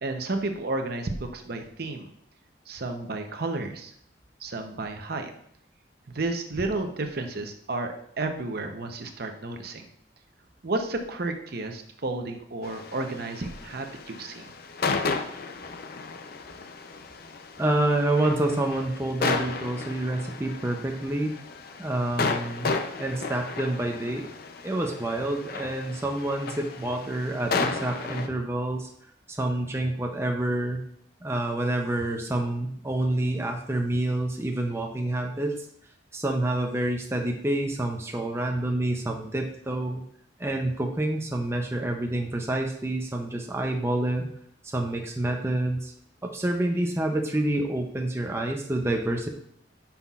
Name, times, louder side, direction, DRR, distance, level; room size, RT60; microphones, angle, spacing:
voice 1, 0.0-2.1 2.7-3.9 4.4-5.3 6.1-9.9 10.6-14.5, right 2 dB, 55° right, 5 dB, 0.8 m, -32 dB
sound 1, 12.6-28.3, left 4 dB, 55° left, 0.6 m, -33 dB
voice 2, 17.6-21.3 21.8-22.7 23.0-24.3 24.6-28.9 29.3-30.8 31.2-35.7 36.1-40.0 40.4-44.3 44.6-45.9 46.2-49.3, right 1 dB, 15° right, 2 dB, 0.5 m, -28 dB
9.5 x 5.8 x 2.4 m, 0.70 s
head